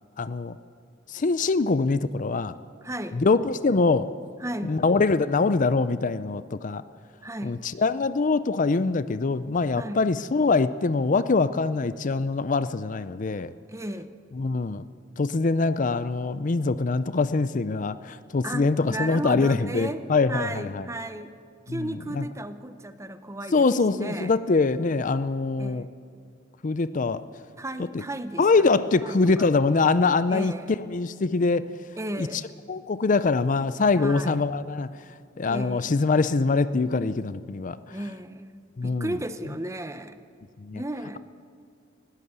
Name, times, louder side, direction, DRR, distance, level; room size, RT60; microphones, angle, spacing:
voice 1, 0.2-0.6 1.1-2.5 3.1-4.1 4.6-6.8 7.4-13.5 14.4-14.8 15.2-20.8 21.7-22.3 23.5-25.9 26.6-27.2 28.4-30.5 30.8-31.7 32.2-32.3 32.7-34.9 35.4-38.0 38.8-39.1 40.6-40.8, left 3 dB, 40° left, 14 dB, 0.5 m, -24 dB
voice 2, 2.8-3.2 4.4-4.8 7.2-7.6 9.7-10.0 13.7-14.1 18.4-20.0 20.3-21.3 21.7-23.7 23.9-24.3 25.6-25.9 27.6-28.7 29.0-29.5 30.3-30.8 32.0-32.4 34.0-34.4 35.5-35.9 37.9-38.5 38.8-40.2 40.7-41.2, right 1 dB, 15° right, 10 dB, 0.8 m, -34 dB
20.0 x 16.5 x 8.1 m, 2.3 s
head